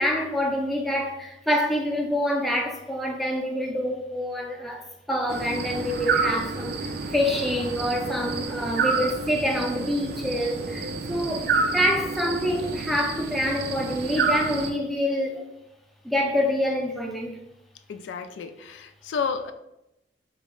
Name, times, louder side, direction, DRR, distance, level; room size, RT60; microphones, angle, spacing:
voice 1, 0.0-15.5 16.0-17.4, equal, ahead, 0 dB, 0.4 m, -26 dB
sound 1, 5.3-14.7, right 4 dB, 60° right, 0.4 m, -29 dB
voice 2, 17.9-19.5, left 6 dB, 85° left, 9 dB, 0.3 m, -31 dB
4.1 x 2.0 x 3.6 m, 0.88 s
head